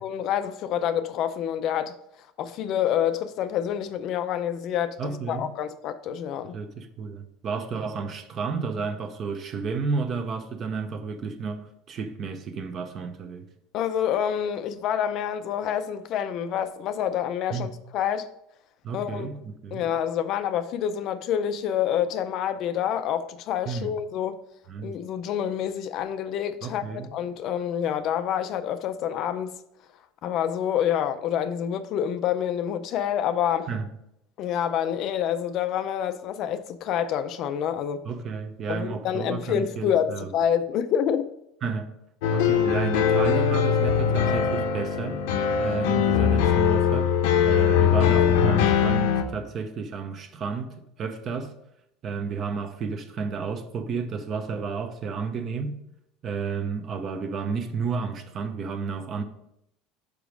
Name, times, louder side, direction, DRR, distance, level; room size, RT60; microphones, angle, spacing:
voice 1, 0.0-1.9 2.4-6.5 13.7-18.3 18.9-19.3 19.7-24.4 24.8-29.5 30.2-33.7 34.4-38.0 38.7-41.3, left 9 dB, 45° left, 0.4 m, -27 dB
voice 2, 5.0-5.5 6.5-13.4 17.5-17.7 18.8-19.9 23.7-23.9 24.7-25.0 26.6-27.1 33.7-33.9 38.0-40.3 41.6-41.9 42.3-45.2 45.6-47.2 47.4-51.6 52.0-55.8 56.2-59.2, right 5 dB, 30° right, 0.7 m, -31 dB
sound 1, 42.2-49.2, left 8 dB, 80° left, 0.8 m, -21 dB
6.0 x 5.0 x 5.1 m
cardioid pair, 160°, 0 cm